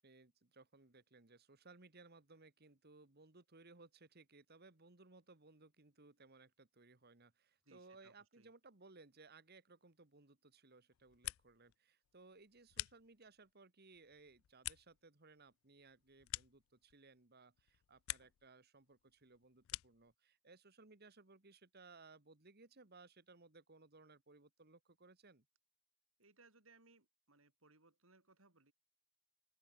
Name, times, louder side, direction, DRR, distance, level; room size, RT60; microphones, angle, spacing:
voice 1, 0.0-25.4, right 3 dB, 50° right, 2.0 m, -63 dB
voice 2, 7.6-8.5 26.2-28.7, right 3 dB, 75° right, 5.5 m, -68 dB
sound 1, 10.9-11.7 12.0-13.5 13.9-17.2 17.5-18.5 18.8-20.1, left 18 dB, 75° left, 0.3 m, -49 dB
open air
head